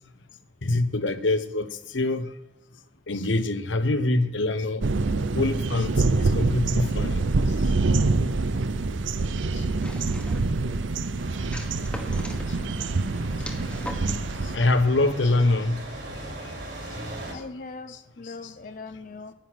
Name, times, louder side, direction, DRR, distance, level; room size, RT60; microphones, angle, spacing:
voice 1, 0.6-2.3 3.1-4.8 5.3-5.9 6.2-7.3 14.5-15.8, left 2 dB, 80° left, 1.0 m, -24 dB
sound 1, 4.8-14.6, right 3 dB, 85° right, 0.6 m, -25 dB
sound 2, 9.8-10.6 11.5-12.5 13.4-14.3, left 1 dB, 5° left, 1.4 m, -40 dB
sound 3, 11.2-17.3, right 1 dB, 65° right, 4.5 m, -38 dB
voice 2, 13.2-14.0 17.3-19.3, left 3 dB, 50° left, 0.6 m, -41 dB
10.5 x 9.8 x 6.3 m
head